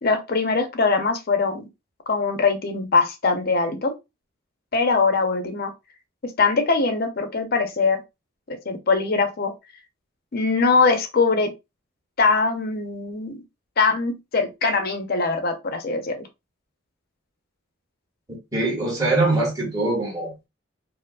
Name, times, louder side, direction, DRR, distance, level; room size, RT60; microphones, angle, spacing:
voice 1, 0.0-1.7 2.1-3.9 4.7-5.7 6.4-8.0 8.5-9.5 10.3-11.5 12.2-13.4 13.8-16.2, left 4 dB, 45° left, 0.5 m, -22 dB
voice 2, 18.5-20.5, right 2 dB, 15° right, 1.3 m, -23 dB
4.4 x 2.0 x 2.3 m
head